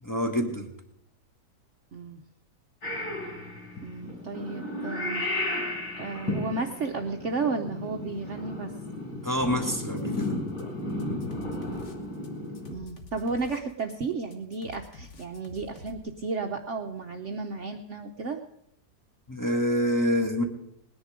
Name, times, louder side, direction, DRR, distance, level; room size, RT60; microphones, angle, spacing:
voice 1, 0.0-0.7 9.2-10.3 19.3-20.4, equal, 10° left, 1 dB, 1.3 m, -26 dB
Purr / Meow, 2.8-12.8, left 1 dB, 85° left, 4.6 m, -34 dB
voice 2, 3.8-5.3 5.6-5.7 6.0-8.7 12.7-18.4, right 4 dB, 55° right, 4 dB, 0.9 m, -33 dB
sound 1, 9.3-10.6 10.9-16.0, left 2 dB, 45° left, 1.6 m, -48 dB
19.0 x 10.0 x 5.0 m, 0.74 s
omnidirectional pair, 1.8 m